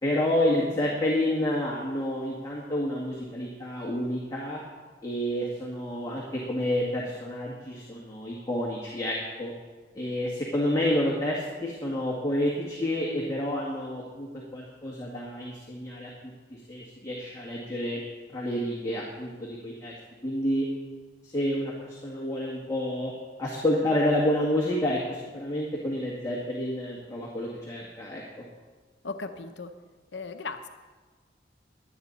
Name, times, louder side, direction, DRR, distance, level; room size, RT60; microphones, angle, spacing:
voice 1, 0.0-4.6 5.0-9.5 10.0-18.0 18.3-19.9 20.2-20.7 21.2-23.1 23.4-28.5, left 1 dB, 20° left, -5 dB, 2.0 m, -29 dB
voice 2, 29.0-29.7 30.1-30.7, left 4 dB, 90° left, 6 dB, 0.8 m, -36 dB
23.0 x 8.8 x 4.1 m, 1.4 s
head